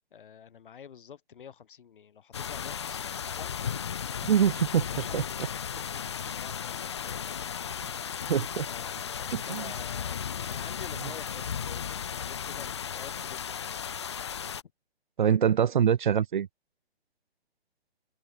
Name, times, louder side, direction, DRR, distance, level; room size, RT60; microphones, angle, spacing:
voice 1, 0.1-3.5 4.9-5.3 5.9-7.5 8.7-13.7, left 8 dB, 50° left, 5.6 m, -49 dB
sound 1, 2.3-14.6, left 8 dB, 25° left, 0.6 m, -35 dB
voice 2, 4.2-4.9 5.1-5.2 8.3-8.6 9.3-9.7 15.2-16.5, right 8 dB, 45° right, 1.5 m, -24 dB
open air
hypercardioid pair, 165°, 33 cm